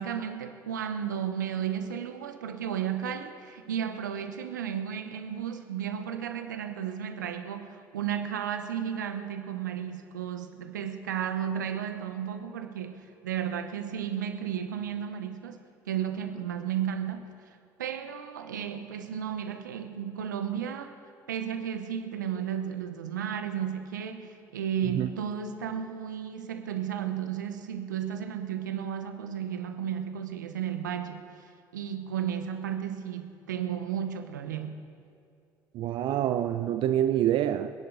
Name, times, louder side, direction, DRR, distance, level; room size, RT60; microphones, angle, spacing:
voice 1, 0.0-17.3 17.8-20.9 21.3-31.2 31.7-34.8, right 9 dB, 85° right, 8 dB, 0.9 m, -33 dB
voice 2, 35.7-37.7, right 11 dB, 60° right, 10 dB, 0.5 m, -26 dB
25.5 x 10.5 x 3.8 m, 2.5 s
hypercardioid pair, 55°, 10 cm